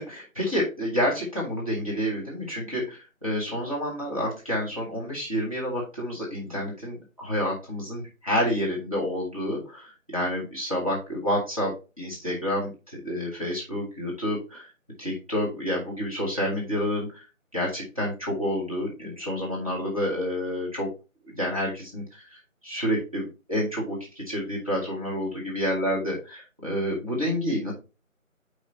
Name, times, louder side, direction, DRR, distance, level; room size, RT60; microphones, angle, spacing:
voice 1, 0.0-14.7 15.0-17.2 17.5-20.9 21.4-26.1 26.6-27.7, equal, 25° right, -5 dB, 2.0 m, -29 dB
8.7 x 5.1 x 2.7 m, 0.29 s
figure-of-eight pair, 180°, 41 cm